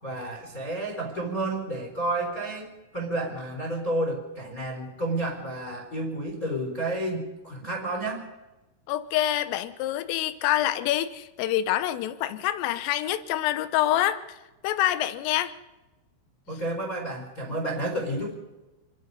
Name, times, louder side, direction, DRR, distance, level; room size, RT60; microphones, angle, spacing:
voice 1, 0.0-8.3 16.5-18.3, right 1 dB, 20° left, 2 dB, 3.9 m, -31 dB
voice 2, 8.9-14.2 14.6-15.5, left 13 dB, 85° left, 12 dB, 3.6 m, -26 dB
28.5 x 21.0 x 5.5 m, 1.1 s
omnidirectional pair, 5.8 m